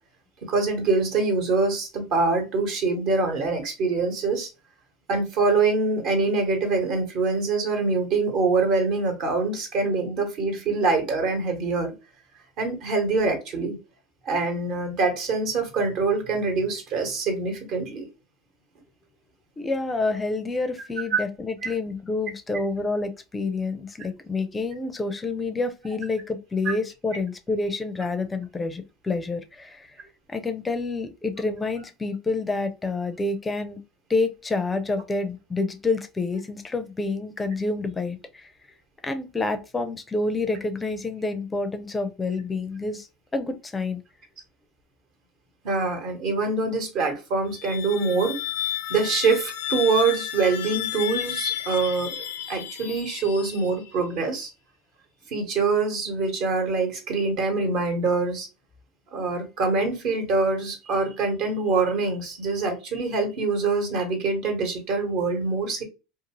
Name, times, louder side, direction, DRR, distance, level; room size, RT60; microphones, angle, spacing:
voice 1, 0.5-4.5 5.1-11.9 12.6-13.8 14.2-18.1 21.1-21.2 21.6-21.7 26.6-26.7 45.6-48.4 48.9-52.2 52.5-54.5 55.3-58.5 59.1-65.8, right 3 dB, 60° right, 1.1 m, -24 dB
voice 2, 19.6-30.0 30.3-33.8 34.1-38.5 39.0-43.1 43.3-44.0, left 3 dB, 20° left, 0.4 m, -28 dB
sound 1, 47.4-54.1, left 11 dB, 80° left, 0.5 m, -32 dB
2.5 x 2.4 x 2.9 m
hypercardioid pair, 95°, 0 cm